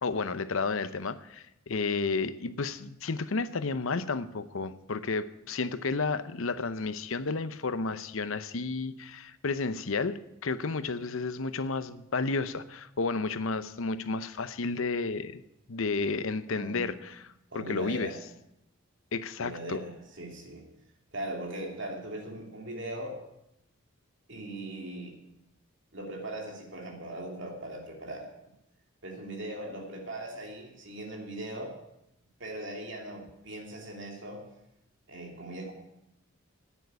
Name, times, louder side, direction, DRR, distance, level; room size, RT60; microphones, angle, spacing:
voice 1, 0.0-15.4 15.7-17.3 17.5-18.1 19.1-19.8, left 4 dB, 70° left, 13 dB, 0.7 m, -32 dB
voice 2, 16.5-16.9 17.5-18.2 19.4-20.7 21.1-23.2 24.3-25.2 25.9-28.3 29.0-31.7 32.4-34.4 35.1-35.7, right 1 dB, 55° right, 1 dB, 2.9 m, -39 dB
10.5 x 9.2 x 8.1 m, 0.84 s
head